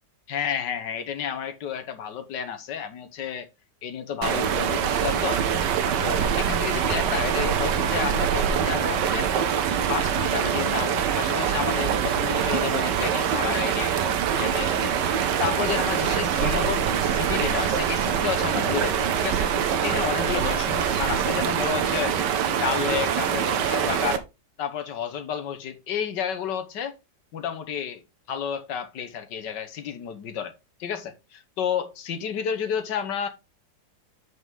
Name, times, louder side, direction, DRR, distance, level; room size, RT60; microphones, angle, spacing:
voice 1, 0.3-3.5 3.8-5.4 6.0-9.3 9.9-24.2 24.6-27.0 27.3-30.5 30.8-33.3, left 8 dB, 80° left, 1.7 m, -31 dB
sound 1, 4.2-24.2, right 8 dB, 80° right, 1.5 m, -24 dB
7.9 x 5.6 x 3.6 m
omnidirectional pair, 1.9 m